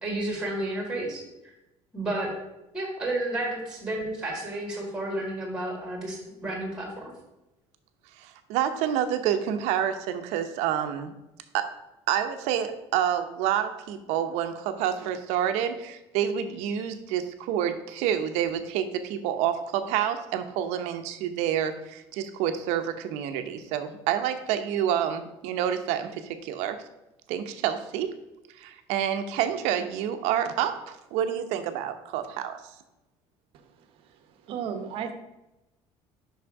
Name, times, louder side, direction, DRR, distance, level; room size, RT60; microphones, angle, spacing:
voice 1, 0.0-1.2 1.9-2.3 2.7-7.1, right 1 dB, 5° right, 0 dB, 1.8 m, -31 dB
voice 2, 8.2-11.1 11.5-11.6 12.1-26.8 27.3-28.1 28.6-32.5, right 9 dB, 80° right, 8 dB, 0.8 m, -28 dB
voice 3, 34.5-35.1, right 7 dB, 55° right, 8 dB, 0.9 m, -32 dB
6.2 x 5.7 x 4.6 m, 0.95 s
cardioid pair, 175°, 11 cm